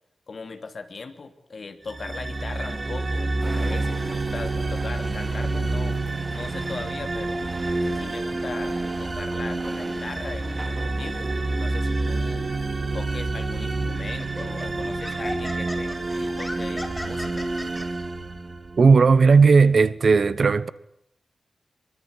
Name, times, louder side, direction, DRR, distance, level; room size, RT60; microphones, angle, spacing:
voice 1, 0.3-6.0 6.3-7.4 7.9-11.3 11.6-12.5 12.9-17.5, left 4 dB, 50° left, 3.0 m, -39 dB
sound 1, 1.9-19.0, right 2 dB, 30° right, 2.6 m, -28 dB
sound 2, 3.4-11.6, right 1 dB, 10° right, 5.0 m, -42 dB
Laughter, 13.4-13.6 14.2-17.9, left 1 dB, 10° left, 4.5 m, -37 dB
voice 2, 18.8-20.7, right 4 dB, 55° right, 1.1 m, -16 dB
25.0 x 24.0 x 8.3 m
wide cardioid pair, 160°, 0 cm